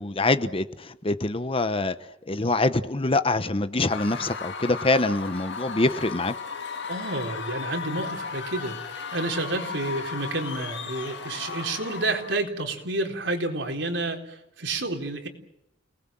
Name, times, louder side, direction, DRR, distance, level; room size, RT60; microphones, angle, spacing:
voice 1, 0.0-1.9 2.3-6.3, left 2 dB, 30° left, 11 dB, 1.0 m, -25 dB
Screaming / Cheering / Crowd, 3.9-12.4, left 5 dB, 65° left, 2.3 m, -35 dB
voice 2, 6.9-15.3, right 2 dB, 75° right, 3 dB, 4.0 m, -30 dB
30.0 x 19.5 x 7.6 m, 0.86 s
head